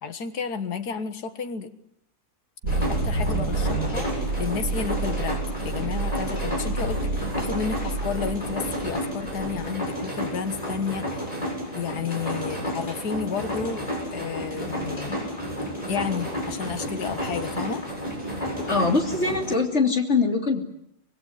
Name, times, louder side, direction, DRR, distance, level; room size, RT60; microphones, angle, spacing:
voice 1, 0.0-1.7 2.6-11.4 11.8-15.3 15.9-17.8, left 6 dB, 75° left, 9 dB, 2.0 m, -32 dB
sound 1, 2.6-9.7, right 3 dB, 90° right, 2.1 m, -29 dB
sound 2, 2.7-19.5, equal, 20° left, 7.7 m, -31 dB
voice 2, 18.7-20.6, left 4 dB, 45° left, 3 dB, 3.4 m, -22 dB
25.5 x 21.0 x 9.7 m, 0.76 s
omnidirectional pair, 1.7 m